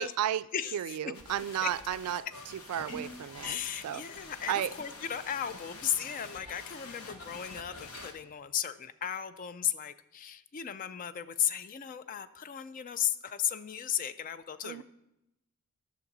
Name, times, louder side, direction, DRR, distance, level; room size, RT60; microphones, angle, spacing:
voice 1, 0.0-0.4 0.7-2.2 2.7-4.0 4.5-4.7 14.6-14.8, right 10 dB, 90° right, 16 dB, 0.3 m, -33 dB
voice 2, 0.5-1.0 1.6-1.7 3.4-14.8, left 9 dB, 40° left, 13 dB, 0.3 m, -35 dB
sound 1, 1.1-8.1, left 3 dB, 75° left, 1.0 m, -47 dB
sound 2, 2.9-3.3 7.8-8.1, equal, 90° left, 2.6 m, -44 dB
8.6 x 6.2 x 4.0 m, 0.89 s
head